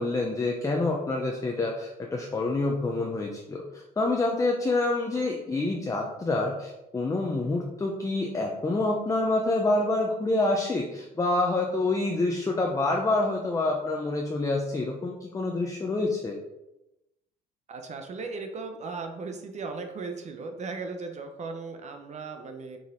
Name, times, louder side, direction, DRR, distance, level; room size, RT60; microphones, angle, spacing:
voice 1, 0.0-16.4, left 2 dB, 20° left, 0 dB, 0.8 m, -27 dB
voice 2, 17.7-22.8, right 4 dB, 45° right, 5 dB, 0.9 m, -37 dB
6.1 x 4.6 x 3.7 m, 0.93 s
cardioid pair, 110°, 17 cm